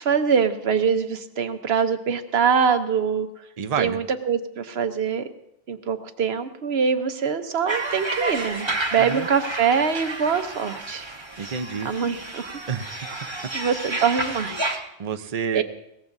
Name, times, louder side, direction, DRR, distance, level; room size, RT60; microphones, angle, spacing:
voice 1, 0.0-3.3 3.8-5.2 5.7-11.0 11.8-12.5 13.5-14.8 15.5-15.6, right 6 dB, 80° right, 8 dB, 1.2 m, -24 dB
voice 2, 3.6-4.0 9.0-9.3 11.4-11.9 12.7-12.9 15.0-15.6, right 7 dB, 40° right, 8 dB, 0.8 m, -28 dB
sound 1, 7.7-14.8, right 2 dB, 25° right, 1.3 m, -31 dB
22.0 x 18.0 x 2.7 m, 0.80 s
omnidirectional pair, 1.0 m